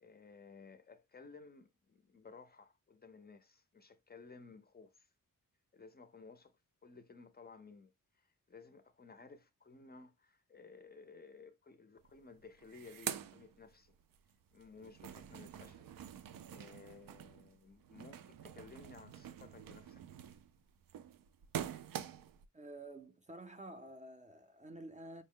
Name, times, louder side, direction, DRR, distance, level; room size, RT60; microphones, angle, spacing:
voice 1, 0.0-5.1 5.7-14.0 14.5-15.9 16.5-20.0, left 4 dB, 30° left, 0.5 m, -57 dB
sound 1, 12.0-12.1 12.4-14.2 14.6-22.5, right 9 dB, 85° right, 0.5 m, -46 dB
voice 2, 22.5-25.2, right 1 dB, 20° right, 0.5 m, -50 dB
5.2 x 2.0 x 3.6 m
wide cardioid pair, 125°, 33 cm